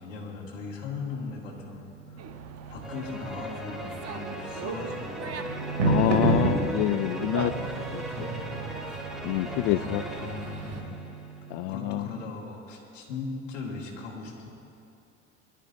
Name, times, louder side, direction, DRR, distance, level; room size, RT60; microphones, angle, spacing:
voice 1, 0.0-2.2 2.7-5.5 7.3-8.6 9.6-11.1 11.7-14.5, left 3 dB, 80° left, -5 dB, 2.3 m, -39 dB
sound 1, 1.2-12.0, right 3 dB, 85° right, 2.9 m, -33 dB
Dog, 2.2-10.8, right 7 dB, 45° right, 1.2 m, -41 dB
sound 2, 2.8-11.4, equal, ahead, 2.2 m, -38 dB
voice 2, 5.8-8.3 9.2-10.0 11.5-12.1, left 16 dB, 55° left, 14 dB, 0.5 m, -27 dB
24.5 x 12.5 x 2.7 m, 2.8 s
hypercardioid pair, 75°, 37 cm